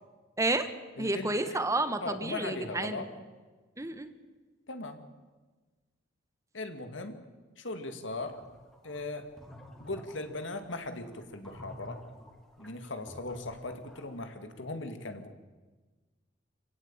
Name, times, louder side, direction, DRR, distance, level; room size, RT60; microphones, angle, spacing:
voice 1, 0.4-0.7 1.0-3.1 3.8-4.1, right 2 dB, 15° right, 10 dB, 1.3 m, -30 dB
voice 2, 1.0-1.6 2.0-3.1 4.7-5.0 6.5-7.2 7.6-8.4 8.8-9.3 9.8-12.0 12.6-15.3, left 2 dB, 75° left, 7 dB, 2.4 m, -39 dB
sound 1, 8.2-14.2, left 1 dB, 5° left, 2.6 m, -50 dB
27.0 x 16.5 x 9.0 m, 1.3 s
head